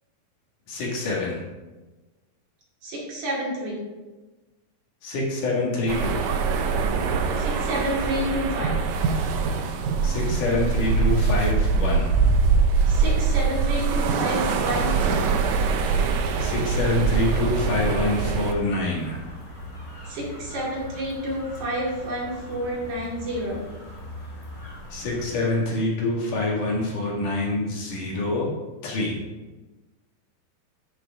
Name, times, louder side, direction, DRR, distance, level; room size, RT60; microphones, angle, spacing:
voice 1, 0.7-1.4 5.0-6.2 10.0-12.1 16.4-19.2 24.9-28.5 28.8-29.2, left 2 dB, 65° left, -4 dB, 3.4 m, -26 dB
voice 2, 2.8-3.9 7.4-8.9 12.9-15.3 20.1-23.6, equal, 55° right, -5 dB, 3.5 m, -29 dB
sound 1, 5.9-18.5, right 5 dB, 75° right, 1.7 m, -23 dB
sound 2, 16.5-25.8, left 1 dB, 25° left, 2.6 m, -41 dB
11.5 x 6.5 x 3.6 m, 1.2 s
omnidirectional pair, 4.1 m